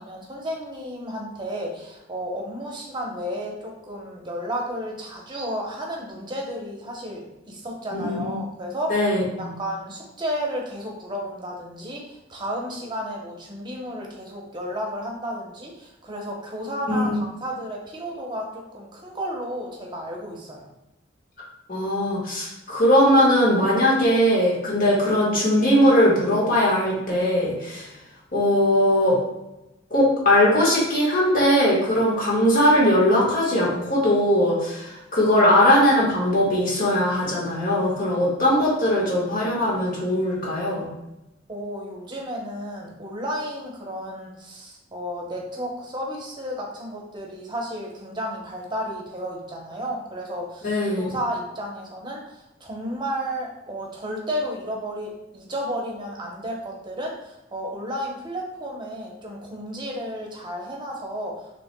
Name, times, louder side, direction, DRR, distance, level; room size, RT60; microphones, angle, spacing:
voice 1, 0.0-20.7 41.5-61.5, equal, 25° right, -1 dB, 0.9 m, -32 dB
voice 2, 7.9-8.4 8.9-9.5 16.9-17.2 21.7-27.9 28.3-29.2 29.9-40.9 50.6-51.0, left 1 dB, 50° left, -4 dB, 1.4 m, -20 dB
5.8 x 3.1 x 2.2 m, 0.95 s
head